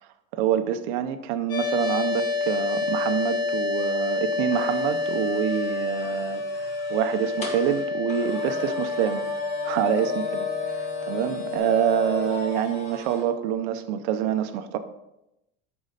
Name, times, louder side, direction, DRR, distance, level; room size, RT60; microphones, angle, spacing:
voice 1, 0.3-9.2 9.6-10.5 10.7-14.8, right 10 dB, 80° right, 10 dB, 0.8 m, -26 dB
sound 1, 1.5-11.6, left 3 dB, 80° left, 2.2 m, -28 dB
sound 2, 4.5-13.3, left 5 dB, 25° left, 1.4 m, -35 dB
12.5 x 4.8 x 4.0 m, 0.87 s
cardioid pair, 180°, 30 cm